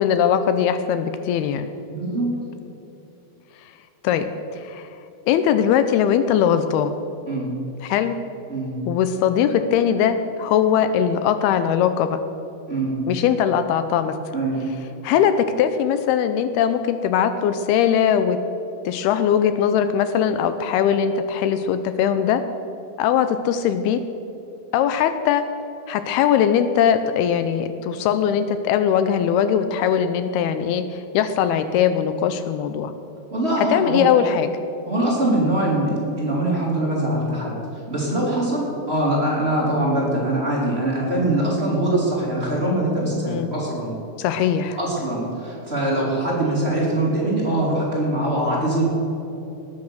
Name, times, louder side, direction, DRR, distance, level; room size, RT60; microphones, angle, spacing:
voice 1, 0.0-1.7 4.0-4.9 5.3-6.9 7.8-8.2 8.9-12.2 13.1-14.1 15.0-18.4 18.9-22.4 23.0-24.0 24.7-25.5 25.9-32.9 33.6-34.5 43.3-43.5 44.2-44.8, left 8 dB, 85° left, 10 dB, 2.5 m, -20 dB
voice 2, 1.9-2.3 7.3-7.5 8.5-8.8 12.7-13.0 14.3-14.6 33.3-34.0 34.8-43.9 44.8-48.8, right 1 dB, 15° right, -5 dB, 3.1 m, -23 dB
19.0 x 9.6 x 6.3 m, 3.0 s
omnidirectional pair, 4.7 m